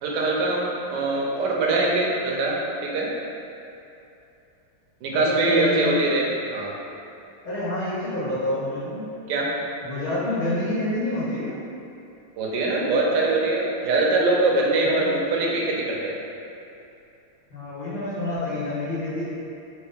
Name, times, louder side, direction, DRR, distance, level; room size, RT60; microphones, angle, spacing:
voice 1, 0.0-3.1 5.0-6.7 9.3-9.5 12.4-16.2, right 2 dB, 70° right, -3 dB, 1.1 m, -23 dB
voice 2, 5.1-6.0 7.4-9.0 9.8-11.6 14.8-15.1 17.5-19.3, left 1 dB, 70° left, -12 dB, 2.4 m, -28 dB
4.5 x 2.8 x 3.5 m, 2.8 s
omnidirectional pair, 2.4 m